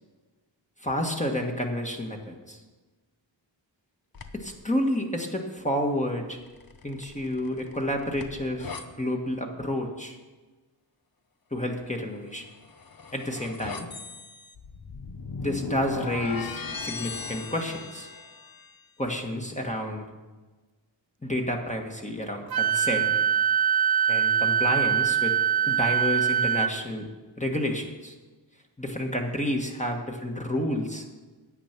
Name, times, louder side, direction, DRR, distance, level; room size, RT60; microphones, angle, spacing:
voice 1, 0.8-2.6 4.3-6.4 6.8-10.2 11.5-12.5 13.1-13.9 15.4-18.1 19.0-20.0 21.2-23.1 24.1-25.3 25.7-27.1 27.4-28.1 28.8-31.0, left 1 dB, 15° left, 1 dB, 1.5 m, -30 dB
sound 1, 4.1-4.6 6.5-8.9 12.4-18.7, left 4 dB, 45° left, 0.9 m, -38 dB
Wind instrument woodwind instrument, 22.5-26.7, right 8 dB, 50° right, 0.6 m, -23 dB
10.0 x 8.0 x 6.0 m, 1.3 s
cardioid pair, 50°, 47 cm